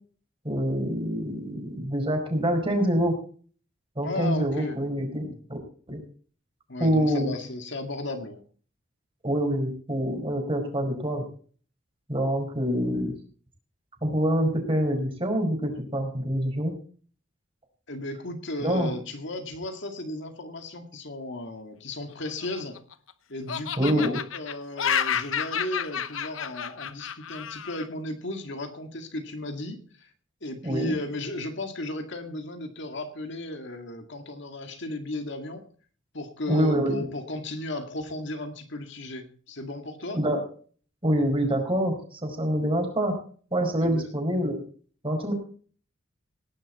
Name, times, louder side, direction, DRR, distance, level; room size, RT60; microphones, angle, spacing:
voice 1, 0.4-3.1 4.0-5.6 5.9-6.0 6.8-7.3 9.2-11.2 12.1-13.1 14.0-16.7 18.6-18.9 23.8-24.2 30.6-30.9 36.5-37.0 40.1-40.4 41.0-43.1 43.5-44.6 45.0-45.3, equal, 25° right, 3 dB, 4.9 m, -26 dB
voice 2, 4.0-4.8 5.2-5.4 6.7-8.4 17.9-22.8 23.3-30.1 30.4-35.6 36.1-40.2 43.8-44.1, left 1 dB, 65° left, 5 dB, 2.1 m, -35 dB
Laughter, 22.3-23.1 23.5-27.9, left 8 dB, 85° left, 0.9 m, -30 dB
18.5 x 10.5 x 4.2 m, 0.43 s
head